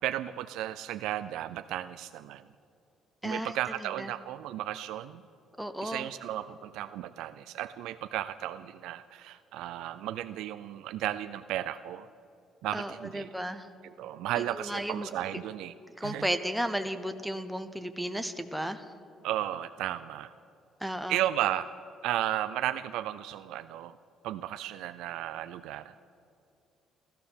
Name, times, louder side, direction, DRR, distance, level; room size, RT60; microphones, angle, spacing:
voice 1, 0.0-2.4 3.2-5.2 5.8-12.1 12.6-13.3 14.0-15.7 16.0-16.3 19.2-20.3 21.1-21.7 22.0-24.0 24.2-26.0, right 13 dB, 80° right, 12 dB, 0.3 m, -34 dB
voice 2, 3.2-3.6 4.0-4.1 5.6-6.1 12.7-13.7 14.6-15.1 16.0-18.8 20.8-21.2, equal, ahead, 8 dB, 0.6 m, -34 dB
15.0 x 13.5 x 6.8 m, 2.7 s
cardioid pair, 170°, 0 cm